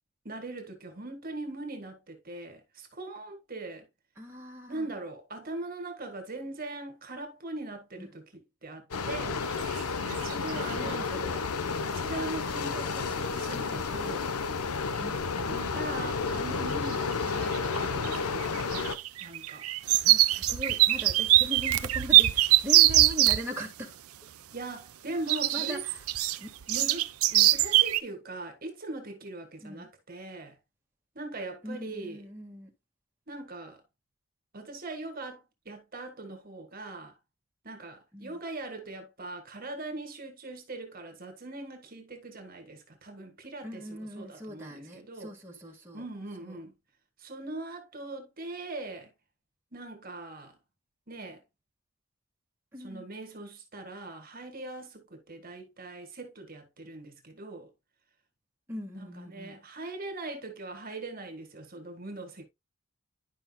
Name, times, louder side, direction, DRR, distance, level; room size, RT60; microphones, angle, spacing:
voice 1, 0.2-3.9 4.7-8.2 8.6-11.1 11.8-14.3 15.5-18.6 19.2-19.7 24.5-25.9 26.7-30.6 31.1-32.2 33.3-33.8 34.5-37.1 37.6-45.3 45.9-46.7 47.2-49.1 49.7-50.6 51.1-51.4 52.8-57.7 58.9-62.5, right 2 dB, 40° right, 1.5 m, -41 dB
voice 2, 4.2-4.9 8.0-8.1 10.5-11.4 15.0-15.6 20.0-24.0 25.3-26.1 26.4-26.5 29.6-29.9 31.6-32.7 38.1-38.4 43.6-46.0 46.4-46.6 52.7-53.1 58.7-59.6, equal, 10° right, 1.6 m, -41 dB
sound 1, 8.9-19.0, left 4 dB, 85° left, 0.7 m, -31 dB
sound 2, 9.6-9.8 10.1-10.7 12.7-12.8 13.4-13.5 13.8-14.1 14.4-15.0 15.5-15.6 16.7-17.2 17.4-23.4 25.3-28.0, right 15 dB, 80° right, 0.6 m, -23 dB
11.0 x 5.6 x 2.3 m
head